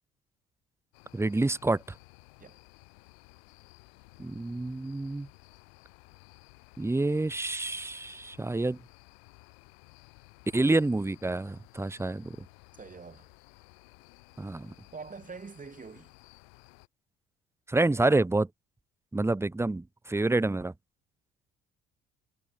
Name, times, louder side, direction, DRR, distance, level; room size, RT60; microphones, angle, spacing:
sound 1, 0.9-16.9, left 35 dB, 80° left, 4.7 m, -56 dB
voice 1, 1.1-1.8 4.2-5.3 6.8-8.8 10.5-12.4 14.4-14.7 17.7-18.5 19.1-20.7, right 2 dB, 10° right, 0.7 m, -28 dB
voice 2, 12.8-13.3 14.9-16.1, right 5 dB, 25° right, 1.4 m, -44 dB
hypercardioid pair, 55°, 30 cm